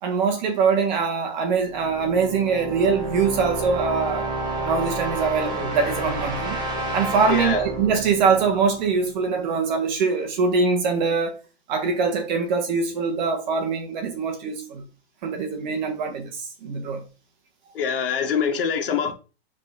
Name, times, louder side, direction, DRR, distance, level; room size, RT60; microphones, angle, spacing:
voice 1, 0.0-4.3 4.6-6.6 6.9-11.4 11.7-14.8 15.2-17.0, right 5 dB, 45° right, 2.1 m, -23 dB
sound 1, 1.6-9.4, right 2 dB, 15° right, 2.3 m, -30 dB
voice 2, 7.3-7.6 17.7-19.1, left 6 dB, 60° left, 2.1 m, -24 dB
5.0 x 4.8 x 6.2 m
hypercardioid pair, 160°, 31 cm